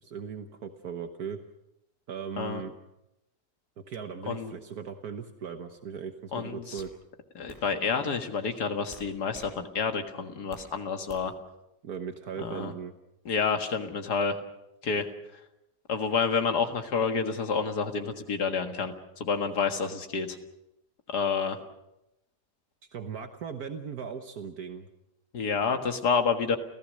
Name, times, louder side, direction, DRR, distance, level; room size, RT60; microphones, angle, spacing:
voice 1, 0.0-1.4 2.1-2.7 3.8-6.9 11.8-12.9 22.9-24.9, right 7 dB, 65° right, 6 dB, 1.6 m, -38 dB
sound 1, 6.0-6.2 6.8-6.9 7.5-7.6 8.9-9.5 9.9-10.7 11.1-11.4, right 1 dB, 15° right, 6.1 m, -49 dB
voice 2, 6.3-6.7 7.4-11.3 12.4-12.7 13.3-14.4 14.8-15.1 15.9-18.9 19.2-20.3 21.1-21.6 25.3-26.6, left 5 dB, 75° left, 6 dB, 2.3 m, -29 dB
29.5 x 15.5 x 6.5 m, 0.89 s
omnidirectional pair, 1.7 m